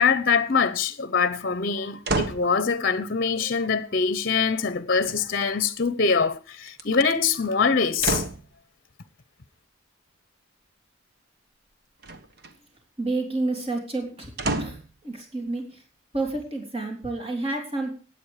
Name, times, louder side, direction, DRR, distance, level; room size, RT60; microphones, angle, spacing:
voice 1, 0.0-8.3, left 5 dB, 50° left, 0.8 m, -23 dB
sound 1, 2.0-2.5 5.0-5.7 6.7-7.1 8.0-8.5 12.0-12.5 14.4-14.9 15.6-15.7, right 2 dB, 55° right, 1.4 m, -29 dB
voice 2, 13.0-14.3 14.6-14.8 15.0-15.6 16.1-17.9, right 2 dB, 30° right, 3.6 m, -29 dB
16.0 x 9.5 x 5.0 m
head